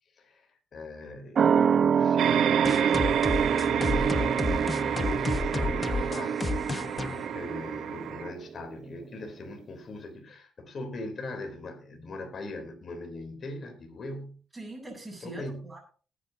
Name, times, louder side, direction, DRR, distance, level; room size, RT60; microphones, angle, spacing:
voice 1, 0.1-3.1 3.5-6.4 6.6-14.4 15.2-15.7, left 2 dB, 50° left, 3.5 m, -41 dB
sound 1, 1.4-8.4 8.7-8.8, right 7 dB, 50° right, 0.4 m, -27 dB
sound 2, 2.2-8.3, right 9 dB, 75° right, 0.9 m, -30 dB
sound 3, 2.6-8.1, left 3 dB, 20° left, 1.1 m, -32 dB
voice 2, 14.5-15.8, right 2 dB, 10° right, 6.3 m, -42 dB
19.0 x 9.4 x 2.8 m
cardioid pair, 90°, 0 cm